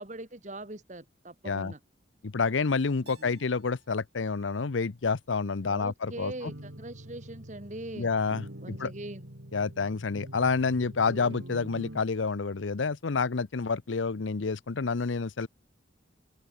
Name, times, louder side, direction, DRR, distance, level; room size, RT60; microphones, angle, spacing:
voice 1, 0.0-1.8 3.0-3.4 5.6-8.1 8.6-9.3, right 1 dB, 40° right, 2.0 m, -42 dB
voice 2, 2.2-6.3 8.0-8.9 9.5-15.5, left 4 dB, 90° left, 0.7 m, -29 dB
Keyboard (musical), 3.1-5.9, right 7 dB, 60° right, 5.7 m, -63 dB
sound 1, 6.1-12.0, right 1 dB, 85° right, 3.8 m, -45 dB
head